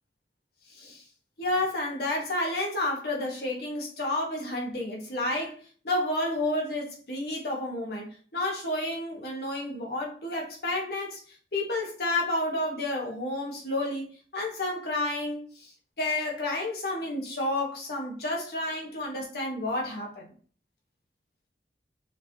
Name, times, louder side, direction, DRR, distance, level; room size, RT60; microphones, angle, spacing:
voice 1, 0.7-1.0 1.4-20.3, left 1 dB, 65° left, 1.4 m, -31 dB
5.8 x 3.1 x 2.9 m
head